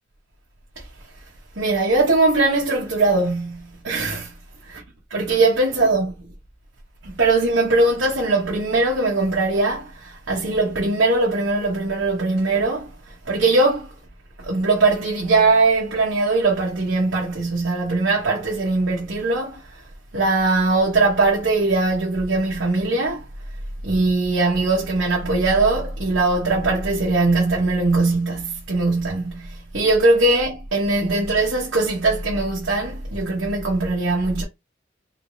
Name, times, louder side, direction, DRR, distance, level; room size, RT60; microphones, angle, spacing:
voice 1, 1.6-4.3 4.6-4.8 5.1-6.2 7.0-13.9 14.4-19.6 20.1-23.3 23.8-34.4, right 2 dB, 65° right, 1.1 m, -20 dB
3.8 x 3.3 x 2.7 m
head